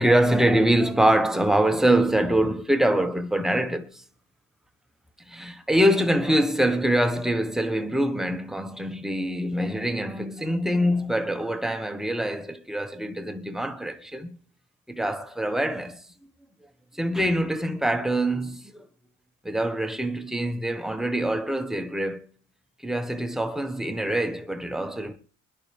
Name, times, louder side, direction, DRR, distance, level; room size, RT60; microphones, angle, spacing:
voice 1, 0.0-4.0 5.3-14.4 14.9-16.0 17.0-18.7 19.4-22.3 22.8-25.2, right 1 dB, ahead, 1.2 m, -24 dB
25.0 x 10.5 x 3.4 m
cardioid pair, 105°, 31 cm